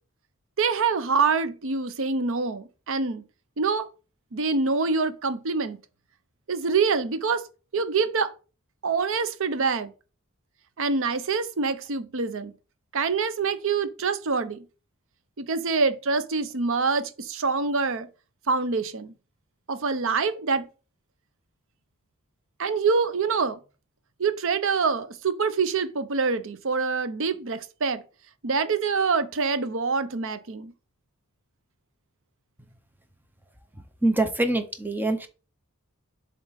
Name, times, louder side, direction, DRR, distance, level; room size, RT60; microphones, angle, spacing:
voice 1, 0.6-3.2 3.6-3.9 4.3-5.8 6.5-7.4 7.7-8.3 8.8-9.9 10.8-12.5 12.9-14.6 15.4-18.1 18.5-19.1 19.7-20.7 22.6-23.6 24.2-28.0 28.4-30.7, right 4 dB, 65° right, 0.7 m, -25 dB
voice 2, 34.0-35.3, right 2 dB, 10° right, 0.7 m, -24 dB
7.3 x 3.8 x 4.0 m
head